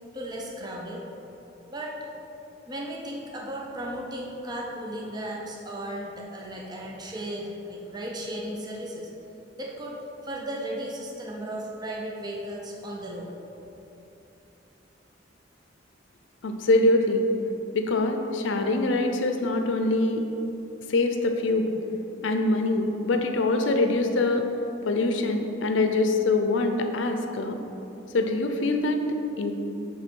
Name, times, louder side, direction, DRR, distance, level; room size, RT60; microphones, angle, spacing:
voice 1, 0.1-1.1 1.7-2.0 2.7-9.1 9.6-13.3, right 1 dB, 20° right, -2 dB, 0.6 m, -35 dB
voice 2, 16.4-17.2 17.7-20.2 20.9-21.7 22.2-24.4 24.8-27.6 28.1-29.5, left 2 dB, 75° left, 5 dB, 0.5 m, -24 dB
7.2 x 3.2 x 5.3 m, 3.0 s
head